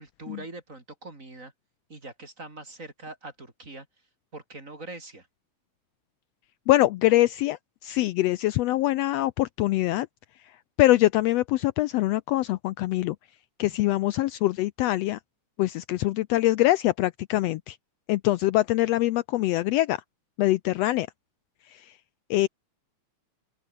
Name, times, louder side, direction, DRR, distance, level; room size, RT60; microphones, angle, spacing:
voice 1, 0.0-1.5 1.9-3.9 4.3-5.3, right 2 dB, 25° right, 4.0 m, -42 dB
voice 2, 6.7-10.1 10.8-13.2 13.6-15.2 15.6-17.8 18.1-20.0 20.4-21.1 21.7-21.9 22.3-22.5, left 16 dB, 85° left, 1.4 m, -24 dB
open air
omnidirectional pair, 3.6 m